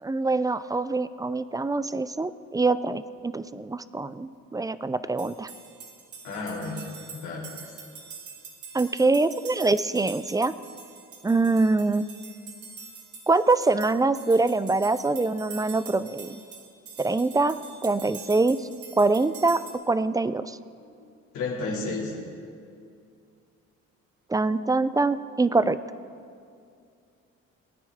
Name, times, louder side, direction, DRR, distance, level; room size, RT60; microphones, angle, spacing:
voice 1, 0.0-5.5 8.7-10.5 11.2-12.1 13.3-16.4 17.0-17.6 17.8-18.7 19.0-19.6 19.9-20.6 24.3-25.8, right 3 dB, 10° right, 14 dB, 0.3 m, -24 dB
sound 1, 5.2-19.7, right 5 dB, 75° right, 2.2 m, -45 dB
voice 2, 6.2-6.8 7.1-7.5 21.3-22.1, left 3 dB, 80° left, -4 dB, 2.5 m, -31 dB
19.5 x 9.5 x 3.5 m, 2.4 s
cardioid pair, 90°, 30 cm